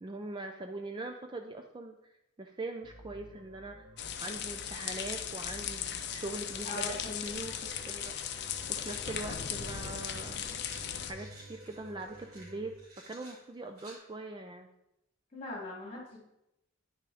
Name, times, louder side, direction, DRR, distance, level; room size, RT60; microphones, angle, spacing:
voice 1, 0.0-2.0 2.4-3.9 4.2-8.1 8.7-10.4 11.0-12.7 13.1-14.7, right 2 dB, 20° right, 5 dB, 0.4 m, -42 dB
sound 1, 2.8-12.7, right 1 dB, 65° right, 1.1 m, -53 dB
sound 2, 4.0-11.1, left 9 dB, 55° left, 0.6 m, -37 dB
sound 3, 6.3-6.4 6.8-7.9 8.8-13.9, right 2 dB, 80° right, 3.2 m, -56 dB
voice 2, 6.6-7.4 15.3-16.2, left 2 dB, 30° left, -3 dB, 2.7 m, -41 dB
9.6 x 5.8 x 3.5 m, 0.87 s
head